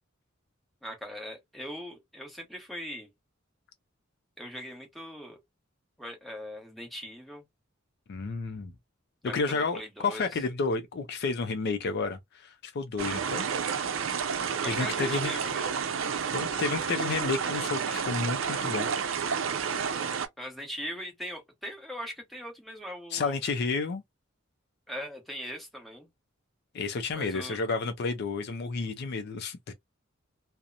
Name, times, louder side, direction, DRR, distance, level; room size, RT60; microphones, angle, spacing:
voice 1, 0.8-3.1 4.4-5.4 6.0-7.4 9.2-10.3 14.6-15.7 20.4-23.3 24.9-26.1 27.1-27.6, equal, ahead, 0.9 m, -40 dB
voice 2, 8.1-8.7 9.2-13.5 14.7-15.3 16.3-18.9 23.1-24.0 26.7-29.7, left 4 dB, 55° left, 0.4 m, -31 dB
sound 1, 13.0-20.3, right 6 dB, 70° right, 0.5 m, -30 dB
2.8 x 2.0 x 2.4 m
head